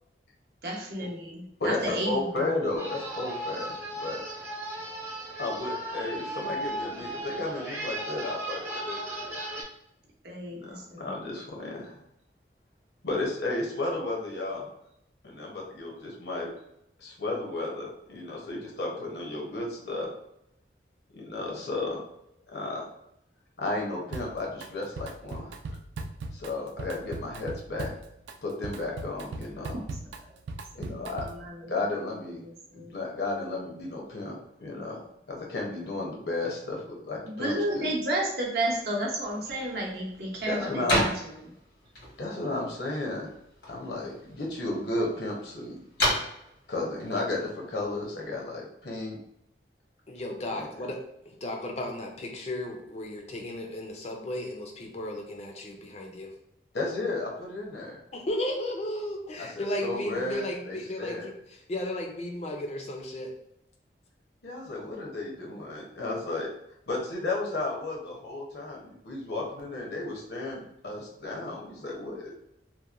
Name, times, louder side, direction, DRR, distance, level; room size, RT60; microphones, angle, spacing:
voice 1, 0.6-2.6 10.2-11.1 29.7-29.9 30.2-30.3 30.8-31.7 32.4-33.0 37.2-41.5, right 1 dB, 60° right, -2 dB, 0.7 m, -32 dB
voice 2, 1.6-4.2 5.4-9.3 10.5-12.0 13.0-14.7 15.2-16.5 17.0-20.1 21.1-22.0 22.5-22.8 23.6-25.5 26.3-27.9 28.4-29.8 30.7-31.3 31.7-32.4 32.7-35.0 35.3-37.9 40.4-41.0 42.2-43.3 43.7-45.8 46.7-49.2 50.5-50.7 56.7-58.0 59.4-61.3 64.4-66.5 66.9-72.2, left 2 dB, 70° left, -1 dB, 0.8 m, -33 dB
sound 1, 2.8-9.6, right 1 dB, 15° right, 0.5 m, -36 dB
Drum kit, 24.1-24.7 25.0-31.5, right 3 dB, 85° right, 0.3 m, -39 dB
sound 2, 39.2-48.4, left 1 dB, 90° left, 1.3 m, -35 dB
voice 3, 50.1-51.0 51.3-56.3 58.1-63.3, left 1 dB, 35° left, 2 dB, 0.4 m, -34 dB
2.9 x 2.1 x 2.4 m, 0.79 s
head